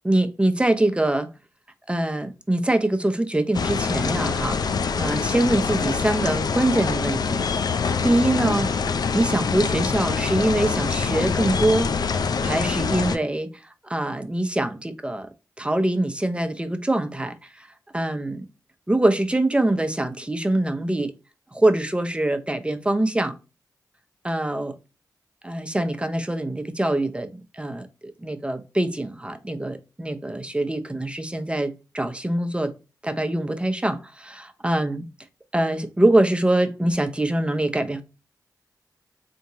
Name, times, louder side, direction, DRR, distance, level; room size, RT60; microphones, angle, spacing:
voice 1, 0.0-1.3 1.9-7.5 8.0-8.7 9.1-13.5 13.9-15.3 15.6-17.7 17.9-18.5 18.9-21.1 21.5-23.3 24.2-24.7 25.4-32.7 33.0-35.0 35.5-38.0, right 1 dB, 15° right, 0.7 m, -24 dB
sound 1, 3.5-13.2, left 5 dB, 65° left, 0.4 m, -25 dB
3.6 x 2.8 x 2.7 m
cardioid pair, 40°, 7 cm